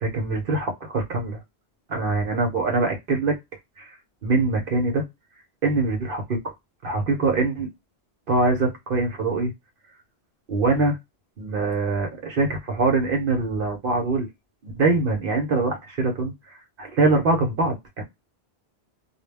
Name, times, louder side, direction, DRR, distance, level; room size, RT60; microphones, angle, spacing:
voice 1, 0.0-1.4 1.9-3.3 3.8-3.9 4.2-5.0 5.6-6.5 6.8-7.7 8.3-9.5 10.5-11.0 11.4-14.3 14.6-18.0, right 3 dB, 60° right, 3 dB, 0.9 m, -23 dB
2.3 x 2.1 x 3.3 m, 0.19 s
omnidirectional pair, 1.1 m